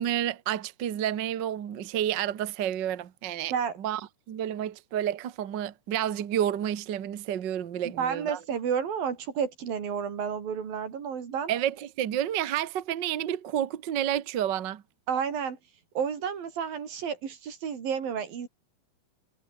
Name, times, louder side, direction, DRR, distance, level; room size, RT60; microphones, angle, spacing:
voice 1, 0.0-3.5 3.8-4.0 4.3-8.4 11.5-14.8, right 10 dB, 55° right, 1.2 m, -30 dB
voice 2, 8.0-11.5 15.1-15.6 16.0-18.5, right 7 dB, 85° right, 5.2 m, -31 dB
omnidirectional pair, 4.0 m